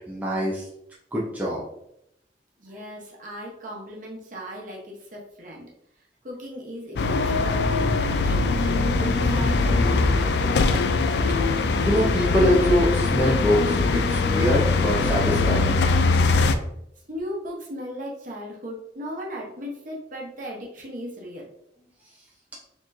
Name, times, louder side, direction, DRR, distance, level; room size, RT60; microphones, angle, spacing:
voice 1, 0.1-0.7 1.1-1.6 11.8-15.7, equal, 10° right, -5 dB, 0.6 m, -23 dB
voice 2, 2.6-5.7 6.2-10.5 17.1-21.5, equal, 45° right, -2 dB, 1.0 m, -37 dB
sound 1, 7.0-16.5, left 3 dB, 65° left, 0.3 m, -21 dB
4.3 x 3.0 x 2.6 m, 0.76 s
head